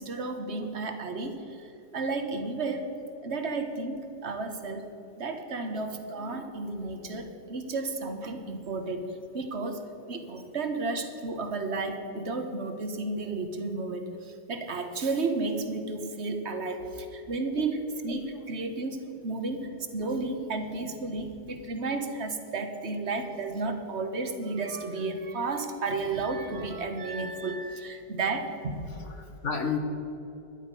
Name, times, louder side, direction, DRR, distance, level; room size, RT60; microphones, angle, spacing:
voice 1, 0.0-2.9 3.2-4.9 5.2-9.1 9.3-9.8 10.1-28.9, right 3 dB, 40° right, 6 dB, 1.3 m, -32 dB
voice 2, 28.9-29.8, left 6 dB, 50° left, 5 dB, 1.3 m, -33 dB
12.5 x 11.0 x 5.5 m, 3.0 s
omnidirectional pair, 1.9 m